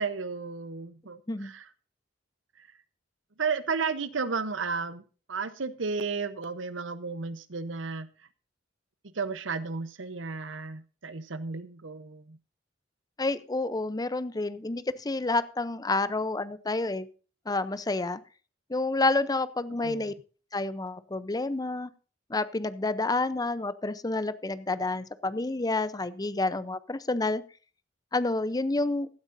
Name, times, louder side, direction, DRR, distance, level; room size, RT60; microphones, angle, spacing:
voice 1, 0.0-1.7 2.6-2.7 3.4-5.0 5.3-8.1 9.1-12.4 19.8-20.1, right 4 dB, 80° right, 13 dB, 0.9 m, -33 dB
voice 2, 13.2-17.1 17.5-18.2 18.7-20.1 20.5-21.9 22.3-27.4 28.1-29.1, left 2 dB, 20° left, 15 dB, 0.6 m, -29 dB
16.5 x 12.5 x 2.6 m, 0.37 s
head